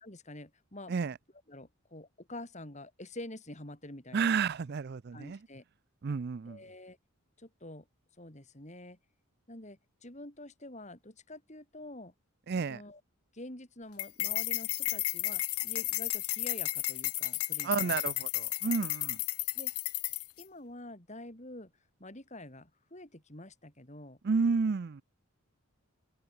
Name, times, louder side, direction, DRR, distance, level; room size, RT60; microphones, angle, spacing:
voice 1, 0.0-0.9 1.5-4.3 5.1-5.6 6.4-7.0 7.4-7.9 8.2-9.0 9.5-12.1 12.7-13.0 13.3-18.0 19.5-19.7 20.4-21.7 22.0-24.2, left 1 dB, 30° left, 3.4 m, -47 dB
voice 2, 4.1-5.4 6.0-6.6 12.5-12.8 17.6-19.2 24.2-25.0, right 5 dB, 45° right, 0.4 m, -31 dB
sound 1, 14.0-20.4, left 18 dB, 80° left, 1.0 m, -33 dB
open air
head